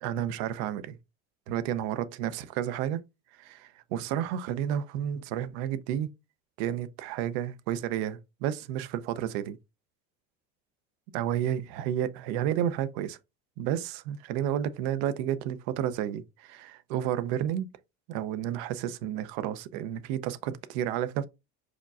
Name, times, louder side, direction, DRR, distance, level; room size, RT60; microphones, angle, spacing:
voice 1, 0.0-1.0 1.5-3.0 3.4-6.1 6.6-9.6 11.1-13.2 13.6-17.7 18.1-21.3, right 10 dB, 80° right, 0.6 m, -31 dB
5.0 x 4.0 x 2.3 m
cardioid pair, 135°, 31 cm